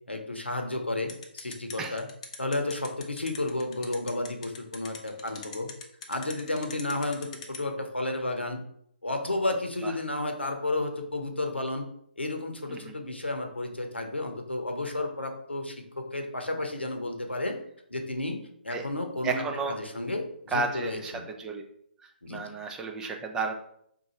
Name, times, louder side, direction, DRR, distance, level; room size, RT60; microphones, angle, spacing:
voice 1, 0.1-2.1 2.4-5.7 6.1-8.6 9.0-11.9 12.2-17.6 17.9-21.3 22.2-22.4, left 2 dB, 85° left, 4 dB, 0.8 m, -32 dB
sound 1, 1.1-7.6, left 6 dB, 35° left, 0.6 m, -41 dB
voice 2, 19.2-19.7 20.5-21.6 22.3-23.5, right 4 dB, 10° right, 2 dB, 0.4 m, -32 dB
3.9 x 2.5 x 4.2 m, 0.70 s
figure-of-eight pair, 135°, 6 cm